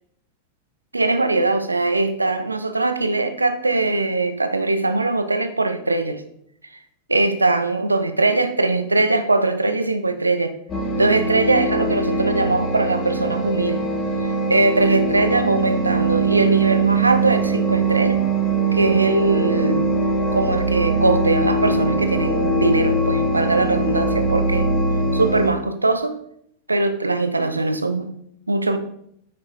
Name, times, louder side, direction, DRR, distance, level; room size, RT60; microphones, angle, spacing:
voice 1, 0.9-6.2 7.1-10.6 11.0-13.9 14.2-18.2 18.7-19.9 20.3-24.7 25.1-26.2 26.7-28.1 28.5-28.8, right 2 dB, 80° right, 10 dB, 0.9 m, -21 dB
sound 1, 10.7-25.5, right 2 dB, 25° left, 3.7 m, -21 dB
9.3 x 9.2 x 4.0 m, 0.70 s
figure-of-eight pair, 90°, 0 cm